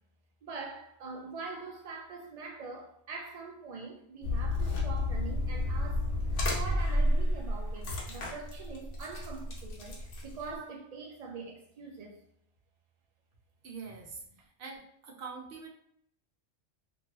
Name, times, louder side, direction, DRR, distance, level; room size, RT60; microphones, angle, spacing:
voice 1, 0.4-12.2, right 4 dB, 85° right, 0.3 m, -43 dB
sound 1, 4.2-10.5, left 1 dB, 80° left, 1.1 m, -31 dB
voice 2, 13.6-14.2 14.6-15.7, right 5 dB, 55° right, 0.8 m, -44 dB
2.7 x 2.6 x 2.9 m
omnidirectional pair, 1.2 m